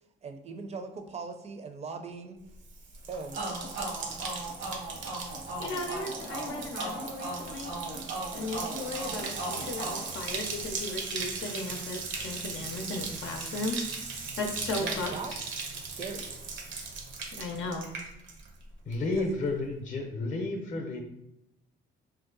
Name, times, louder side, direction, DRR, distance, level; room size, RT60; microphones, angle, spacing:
voice 1, 0.2-2.4 3.1-3.5 14.8-15.3 15.7-16.4 19.0-19.3, right 4 dB, 35° right, 6 dB, 0.4 m, -40 dB
Bathtub (filling or washing), 2.5-18.6 18.9-19.4, right 4 dB, 75° right, 0.6 m, -38 dB
sound 1, 3.3-10.9, right 2 dB, 90° right, 1.1 m, -38 dB
voice 2, 5.6-7.7 8.3-13.8 14.4-15.4 17.4-17.9, left 2 dB, 85° left, 1 dB, 0.5 m, -36 dB
voice 3, 18.8-21.0, left 2 dB, 40° left, 3 dB, 0.6 m, -31 dB
2.7 x 2.1 x 3.8 m, 0.88 s
cardioid pair, 90°, 20 cm